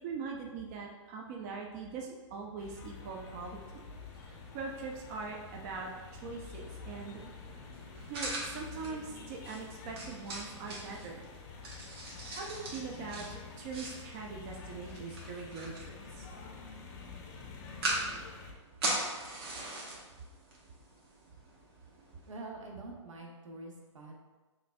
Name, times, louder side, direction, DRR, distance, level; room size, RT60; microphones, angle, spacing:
voice 1, 0.0-3.8 4.2-5.9 6.2-7.2 8.1-11.3 12.3-16.3, right 4 dB, 30° right, 1 dB, 0.4 m, -42 dB
sound 1, 2.6-18.5, left 4 dB, 40° left, 0.6 m, -48 dB
sound 2, 3.4-22.4, right 2 dB, 55° right, 1.2 m, -42 dB
voice 2, 22.3-24.1, right 2 dB, 80° right, 0 dB, 0.9 m, -45 dB
5.7 x 2.6 x 2.2 m, 1.2 s
hypercardioid pair, 135°, 16 cm